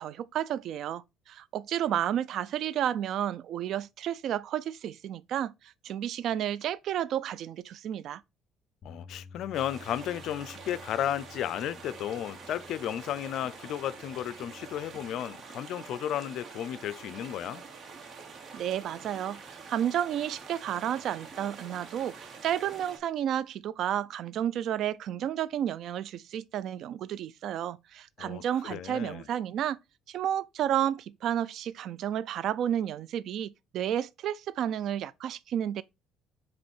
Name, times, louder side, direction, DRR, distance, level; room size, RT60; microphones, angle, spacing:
voice 1, 0.0-5.5 5.8-8.2 18.5-29.8 30.1-35.8, right 10 dB, 65° right, 0.4 m, -31 dB
voice 2, 8.8-17.6 28.2-29.3, left 11 dB, 65° left, 0.5 m, -34 dB
Bass guitar, 8.8-15.1, left 4 dB, 50° left, 2.5 m, -53 dB
sound 1, 9.5-23.0, right 5 dB, 50° right, 1.8 m, -46 dB
7.6 x 3.1 x 4.3 m
cardioid pair, 110°, 0 cm